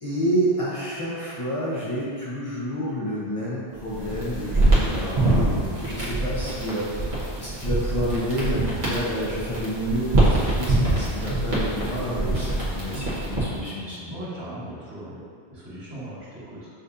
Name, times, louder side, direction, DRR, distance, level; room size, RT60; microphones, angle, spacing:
voice 1, 0.0-7.1 7.4-14.1, equal, 35° left, -8 dB, 0.7 m, -29 dB
sound 1, 3.8-13.6, right 2 dB, 45° right, 1.2 m, -24 dB
voice 2, 12.7-13.0 14.1-15.2 15.5-16.7, right 1 dB, 70° right, -10 dB, 1.5 m, -38 dB
6.5 x 2.5 x 2.6 m, 2.1 s
omnidirectional pair, 1.1 m